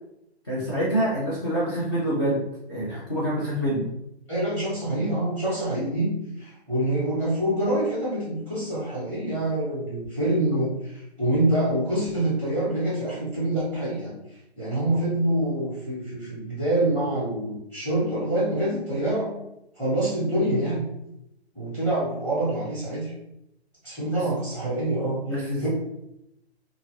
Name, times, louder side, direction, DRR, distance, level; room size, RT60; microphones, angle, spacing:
voice 1, 0.5-3.9 24.1-24.2 25.3-25.7, right 1 dB, 25° left, -7 dB, 0.4 m, -26 dB
voice 2, 4.3-6.1 6.4-14.1 14.6-19.3 19.8-20.8 21.5-23.1 23.8-25.7, right 1 dB, 5° left, -9 dB, 1.0 m, -26 dB
2.8 x 2.4 x 2.9 m, 0.83 s
hypercardioid pair, 160°, 33 cm